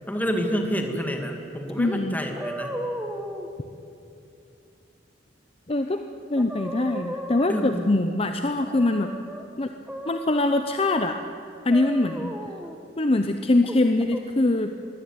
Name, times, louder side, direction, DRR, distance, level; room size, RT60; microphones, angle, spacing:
voice 1, 0.1-2.7 7.5-8.0, equal, 10° left, 3 dB, 2.3 m, -28 dB
voice 2, 1.8-2.1 5.7-6.0 6.3-9.1 9.6-9.7 10.1-11.2 11.6-12.3 13.0-14.7, left 2 dB, 35° left, 7 dB, 0.8 m, -23 dB
sound 1, 2.4-3.5 5.9-6.0 6.4-8.1 8.6-9.4 9.9-11.2 11.7-12.8 13.6-14.2, right 1 dB, 5° right, 1.4 m, -35 dB
22.0 x 16.5 x 9.4 m, 2.6 s
head